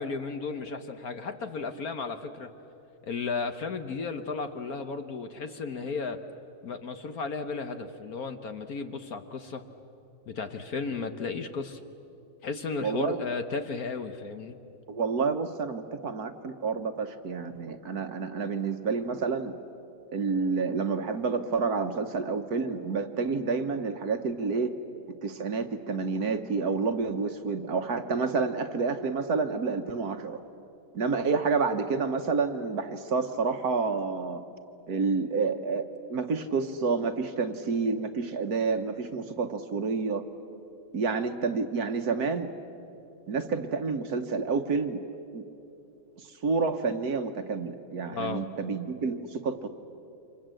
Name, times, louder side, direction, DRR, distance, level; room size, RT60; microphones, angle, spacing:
voice 1, 0.0-2.5 3.0-6.2 6.6-9.6 10.3-11.8 12.4-14.6 48.1-48.4, left 4 dB, 55° left, 8 dB, 1.2 m, -34 dB
voice 2, 12.8-13.3 14.9-19.5 20.1-24.7 25.2-30.4 30.9-34.4 34.9-40.2 40.9-42.5 43.3-45.0 45.3-45.4 46.2-49.7, right 4 dB, 50° right, 7 dB, 1.5 m, -29 dB
29.0 x 25.5 x 7.7 m, 2.8 s
omnidirectional pair, 2.3 m